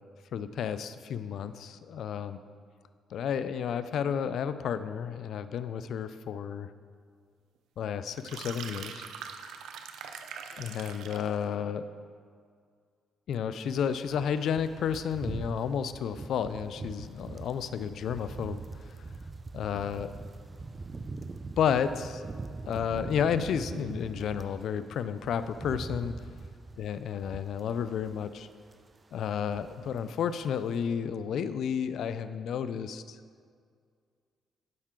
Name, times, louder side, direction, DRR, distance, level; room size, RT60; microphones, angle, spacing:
voice 1, 0.3-2.4 3.1-6.7 7.8-9.1 10.6-11.8 13.3-18.6 19.5-20.1 21.6-22.2 22.7-26.1 26.8-28.5 29.1-33.2, left 8 dB, 70° left, 12 dB, 0.4 m, -31 dB
sound 1, 8.1-11.3, right 7 dB, 85° right, 0.5 m, -42 dB
sound 2, 13.7-24.6 25.0-28.4 28.7-28.9 29.2-30.1 30.3-30.5, right 3 dB, 30° right, 0.4 m, -42 dB
11.5 x 5.6 x 3.7 m, 2.1 s
cardioid pair, 90°, 0 cm